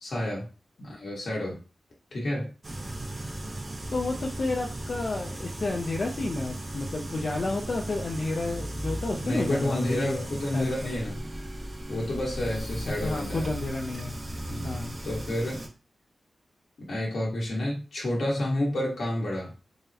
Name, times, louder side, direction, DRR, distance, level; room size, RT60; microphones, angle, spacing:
voice 1, 0.0-0.5 0.8-1.6 2.1-2.5 9.2-11.2 11.9-13.5 14.5-14.8 15.0-15.7 16.9-19.5, left 1 dB, 80° left, -4 dB, 1.3 m, -30 dB
sound 1, 2.6-15.7, right 1 dB, 30° right, 0.6 m, -36 dB
voice 2, 3.9-10.9 13.0-14.2 14.6-14.9, left 2 dB, 50° left, 0 dB, 0.4 m, -31 dB
3.8 x 2.1 x 2.7 m, 0.34 s
wide cardioid pair, 140°, 0 cm